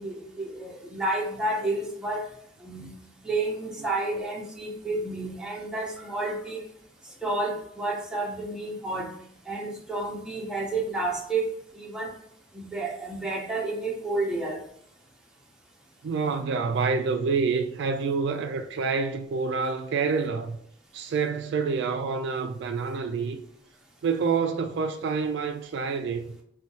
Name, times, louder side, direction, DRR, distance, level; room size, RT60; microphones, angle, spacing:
voice 1, 0.0-2.3 2.6-2.9 3.2-6.6 7.2-9.1 9.5-12.1 12.5-14.6, right 2 dB, 5° right, 0.6 m, -30 dB
voice 2, 16.0-20.6 20.9-23.4 24.0-26.3, right 5 dB, 60° right, 0.3 m, -27 dB
4.0 x 2.2 x 2.8 m
head